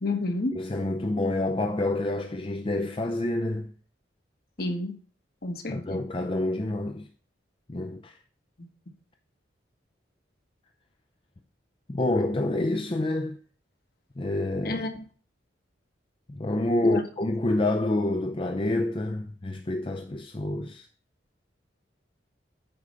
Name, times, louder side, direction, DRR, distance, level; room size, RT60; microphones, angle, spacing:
voice 1, 0.0-0.5 4.6-4.9 5.4-6.0 14.6-15.0 16.8-17.0, left 2 dB, 55° left, 1.5 m, -29 dB
voice 2, 0.5-3.7 5.7-7.1 7.7-8.1 11.9-13.4 14.2-14.9 16.3-20.9, left 2 dB, 30° left, 0.5 m, -28 dB
8.7 x 4.9 x 5.5 m
head